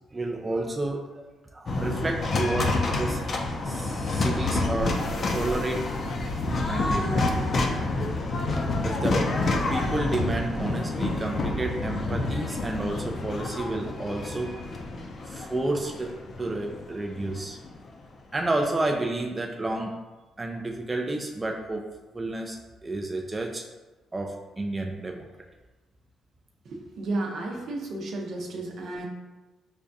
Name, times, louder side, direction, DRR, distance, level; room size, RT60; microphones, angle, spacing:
voice 1, 0.1-1.2 1.5-3.3 3.6-5.0 5.3-5.9 6.7-7.4 8.8-9.3 9.7-14.6 15.3-17.6 18.3-20.0 20.4-23.7 24.1-25.3, right 2 dB, 20° right, 1 dB, 0.3 m, -31 dB
sound 1, 1.7-17.9, left 2 dB, 45° left, 0.5 m, -28 dB
voice 2, 26.7-29.0, right 2 dB, 65° right, 0 dB, 0.6 m, -32 dB
4.9 x 2.2 x 2.6 m, 1.2 s
cardioid pair, 90°, 0 cm